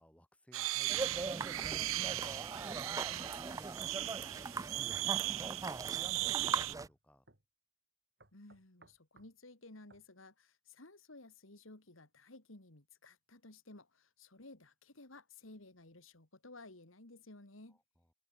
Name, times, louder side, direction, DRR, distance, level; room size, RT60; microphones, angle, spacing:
voice 1, 0.0-7.3 17.7-18.1, equal, 5° left, 7.6 m, -61 dB
sound 1, 0.5-6.8, right 17 dB, 80° right, 0.4 m, -38 dB
sound 2, 0.9-6.9, right 3 dB, 15° right, 0.3 m, -41 dB
sound 3, 6.0-7.0 7.3-7.4 8.2-9.3 9.9-10.1, right 2 dB, 55° right, 5.0 m, -64 dB
voice 2, 8.3-17.8, left 2 dB, 80° left, 2.7 m, -56 dB
head